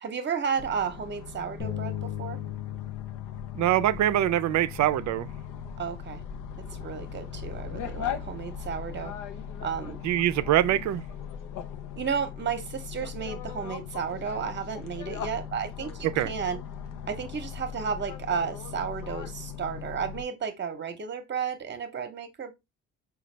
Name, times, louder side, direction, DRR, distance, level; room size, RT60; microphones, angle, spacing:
voice 1, 0.0-2.4 5.8-6.2 6.8-9.1 9.6-10.0 12.0-16.6 17.1-22.5, right 6 dB, 35° right, 0.8 m, -33 dB
sound 1, 0.6-20.2, left 7 dB, 85° left, 0.7 m, -39 dB
Bass guitar, 1.6-7.8, left 12 dB, 35° left, 0.7 m, -39 dB
voice 2, 3.6-5.3 10.0-11.0 16.2-16.3, right 12 dB, 70° right, 0.4 m, -24 dB
3.9 x 2.3 x 3.2 m
cardioid pair, 90°, 30 cm